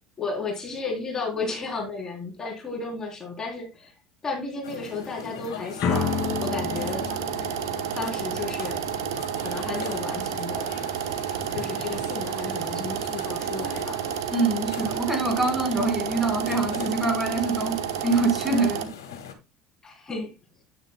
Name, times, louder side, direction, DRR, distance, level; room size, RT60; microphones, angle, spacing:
voice 1, 0.2-3.9 4.2-6.1 6.4-7.1 7.9-8.9 9.4-10.7 11.5-14.0 19.8-20.3, left 3 dB, 30° left, 3.5 m, -33 dB
sound 1, 4.6-19.3, left 6 dB, 85° left, 1.9 m, -40 dB
sound 2, 5.8-8.7, left 6 dB, 55° left, 2.5 m, -30 dB
sound 3, 5.9-18.9, right 11 dB, 80° right, 0.9 m, -31 dB
voice 2, 14.3-18.9, right 3 dB, 10° right, 4.8 m, -25 dB
9.6 x 9.5 x 2.2 m
hypercardioid pair, 75°, 2 cm